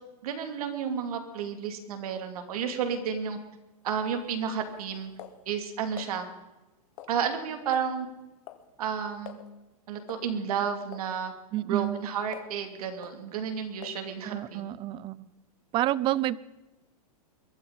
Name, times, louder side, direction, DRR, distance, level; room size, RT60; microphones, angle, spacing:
voice 1, 0.2-3.4 3.8-5.1 5.5-6.3 7.1-8.1 8.8-9.4 9.9-11.3 11.6-14.6, right 7 dB, 70° right, 5 dB, 2.8 m, -31 dB
sound 1, 3.9-6.1 7.0-7.4 7.7-8.7 9.0-9.1 9.3-9.5 10.1-10.3 10.9-11.1 11.6-12.6 13.0-13.2 13.8-14.1, left 12 dB, 55° left, 1.6 m, -47 dB
voice 2, 11.5-12.0 14.2-15.3 15.7-16.4, right 14 dB, 25° right, 20 dB, 0.5 m, -29 dB
22.5 x 13.0 x 4.2 m, 1.0 s
hypercardioid pair, 140°, 20 cm